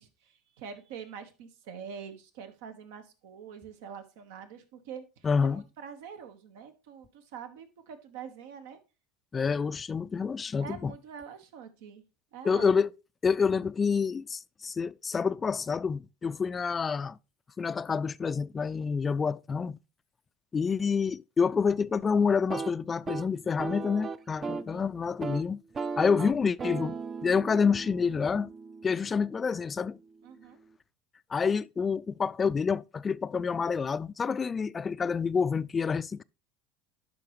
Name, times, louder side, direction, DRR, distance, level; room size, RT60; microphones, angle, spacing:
voice 1, 0.0-8.8 10.6-12.0 12.3-12.7 24.7-24.9 30.2-30.6, right 7 dB, 75° right, 1.3 m, -45 dB
voice 2, 5.2-5.6 9.3-10.9 12.4-12.9 13.2-17.2 17.6-19.8 20.5-25.6 26.0-26.9 27.2-28.5 28.8-30.0 31.3-36.2, left 5 dB, 30° left, 0.4 m, -28 dB
sound 1, 22.4-24.7 25.1-25.4 25.7-29.6, right 5 dB, 30° right, 0.5 m, -37 dB
11.5 x 5.2 x 3.1 m
hypercardioid pair, 85°, 0 cm